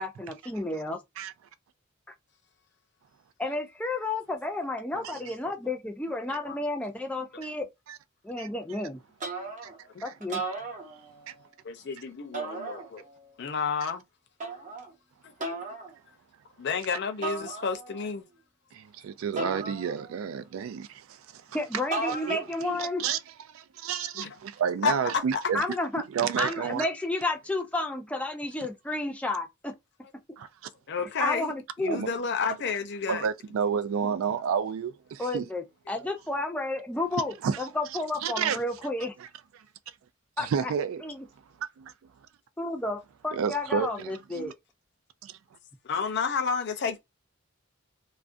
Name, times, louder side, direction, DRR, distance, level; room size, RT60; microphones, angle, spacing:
voice 1, 0.0-1.0 3.4-7.7 8.2-9.0 10.0-10.4 21.5-23.0 25.5-29.7 31.2-32.0 34.0-34.1 35.2-39.1 40.4-40.7 41.0-41.2 42.6-44.5, left 2 dB, 5° left, 0.4 m, -31 dB
voice 2, 4.9-5.3 6.4-6.6 9.9-10.0 11.6-13.0 13.4-14.0 15.2-15.3 16.6-18.3 24.1-24.4 24.8-24.9 30.9-31.5 31.8-33.3 45.8-47.0, left 5 dB, 55° left, 0.5 m, -31 dB
sound 1, 9.2-9.8 10.2-11.3 12.3-13.2 14.4-14.9 15.4-15.9 17.2-18.1 19.4-20.3 21.9-22.7, right 3 dB, 40° right, 0.7 m, -36 dB
voice 3, 18.7-21.4 22.1-23.2 23.5-25.6 26.1-26.9 30.4-30.5 31.9-32.1 33.1-35.5 37.4-37.6 38.2-38.6 40.4-41.0 41.6-41.9 43.3-44.5 45.2-45.4, right 7 dB, 85° right, 0.3 m, -30 dB
2.3 x 2.1 x 2.5 m
head